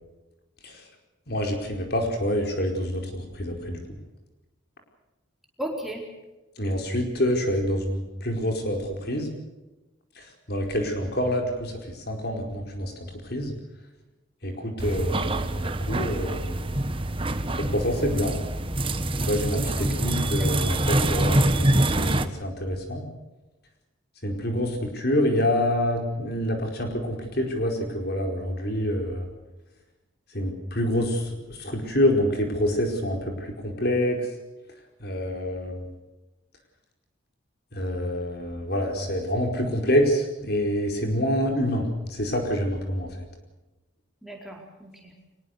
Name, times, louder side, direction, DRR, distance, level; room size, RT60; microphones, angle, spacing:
voice 1, 1.3-4.0 6.6-9.3 10.2-13.5 14.4-16.7 17.7-18.4 19.2-23.1 24.2-29.3 30.3-34.3 35.0-35.9 37.7-43.2, equal, 55° left, 3 dB, 4.7 m, -27 dB
voice 2, 5.6-6.1 19.8-20.7 44.2-45.1, right 1 dB, ahead, 0 dB, 4.3 m, -37 dB
sound 1, 14.8-22.3, right 1 dB, 25° right, 1.2 m, -25 dB
24.0 x 21.5 x 6.7 m, 1.1 s
head